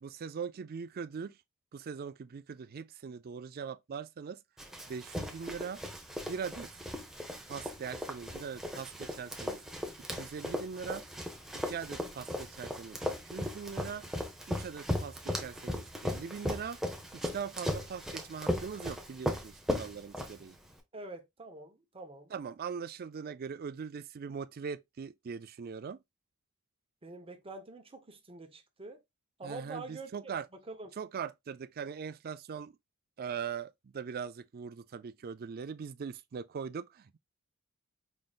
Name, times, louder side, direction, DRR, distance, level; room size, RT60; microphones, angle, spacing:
voice 1, 0.0-1.3 1.7-4.4 4.9-5.8 6.3-6.7 7.5-9.6 10.1-11.0 11.6-13.0 13.3-14.1 14.5-16.8 17.2-20.6 22.3-26.0 29.4-30.5 31.0-32.7 33.2-37.2, right 6 dB, 45° right, 0.4 m, -41 dB
Run, 4.6-20.7, left 1 dB, ahead, 0.8 m, -37 dB
voice 2, 20.9-22.3 27.0-29.0 29.4-30.3 30.7-30.9, right 3 dB, 25° right, 0.9 m, -46 dB
5.1 x 3.9 x 2.4 m
head